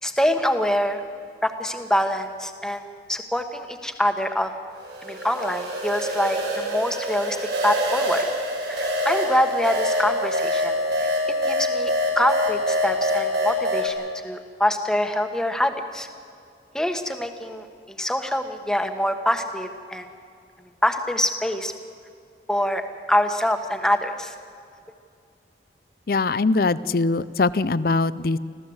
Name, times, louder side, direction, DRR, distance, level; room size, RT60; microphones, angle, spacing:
voice 1, 0.0-1.0 1.4-4.5 5.0-7.4 7.6-8.2 8.6-10.7 11.0-11.1 11.4-16.1 16.7-20.1 20.8-21.7 22.5-22.8 23.1-24.3, left 1 dB, 5° left, 6 dB, 1.3 m, -25 dB
sound 1, 4.8-13.9, left 1 dB, 75° right, 6.1 m, -25 dB
voice 2, 26.1-28.4, left 3 dB, 55° left, 17 dB, 0.5 m, -22 dB
25.5 x 15.5 x 8.0 m, 2.4 s
head